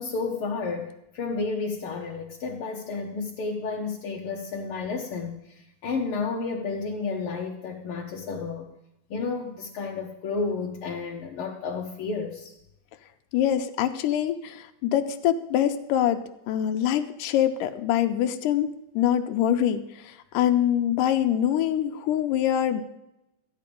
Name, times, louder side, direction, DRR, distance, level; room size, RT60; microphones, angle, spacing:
voice 1, 0.0-8.7 9.1-12.5, left 4 dB, 70° left, 0 dB, 1.3 m, -31 dB
voice 2, 13.3-16.2 16.5-22.8, left 10 dB, 90° left, 6 dB, 2.3 m, -24 dB
13.5 x 10.0 x 5.2 m, 0.87 s
omnidirectional pair, 3.7 m